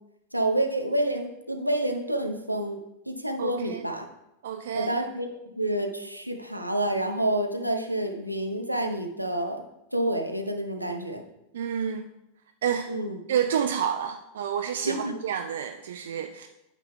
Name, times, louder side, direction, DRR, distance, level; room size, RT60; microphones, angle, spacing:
voice 1, 0.3-2.8 3.1-4.1 4.7-9.7 9.9-11.2 12.9-13.2 14.9-15.1, right 1 dB, 90° right, 4 dB, 0.7 m, -28 dB
voice 2, 3.4-3.8 4.4-4.9 11.5-12.1 12.6-12.9 13.3-16.5, right 8 dB, 60° right, 7 dB, 0.4 m, -29 dB
8.9 x 8.5 x 2.2 m, 0.90 s
figure-of-eight pair, 90°, 0 cm